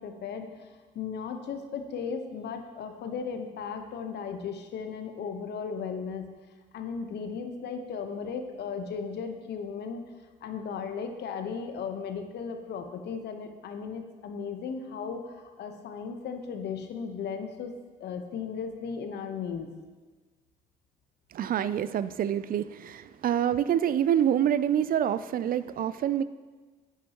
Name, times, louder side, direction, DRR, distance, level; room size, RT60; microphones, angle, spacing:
voice 1, 0.0-6.3 6.7-10.0 10.4-17.7 18.0-19.7, left 6 dB, 65° left, 6 dB, 1.0 m, -36 dB
voice 2, 21.3-26.2, right 10 dB, 50° right, 15 dB, 0.4 m, -26 dB
10.5 x 8.6 x 2.9 m, 1.4 s
supercardioid pair, 60°, 19 cm